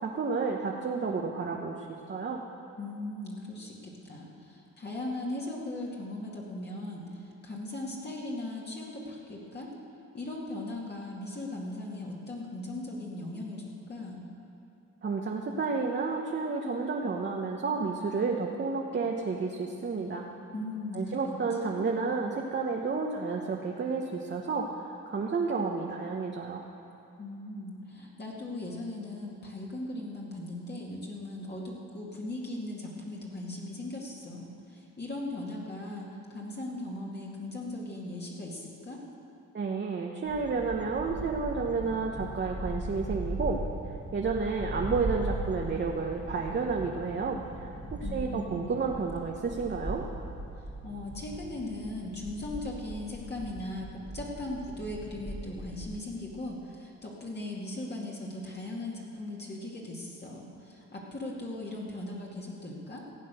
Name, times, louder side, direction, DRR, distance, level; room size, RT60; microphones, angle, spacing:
voice 1, 0.0-2.4 15.0-20.3 20.9-26.6 39.5-43.6 44.1-50.0, right 4 dB, 35° right, 0 dB, 1.1 m, -31 dB
voice 2, 2.8-9.7 10.1-14.2 20.5-21.3 21.6-21.8 27.2-39.0 48.0-48.7 50.6-63.1, left 2 dB, 35° left, -3 dB, 2.2 m, -38 dB
sound 1, 40.3-56.0, right 1 dB, 5° right, 1.5 m, -39 dB
16.0 x 8.5 x 6.9 m, 2.7 s
cardioid pair, 90°, 30 cm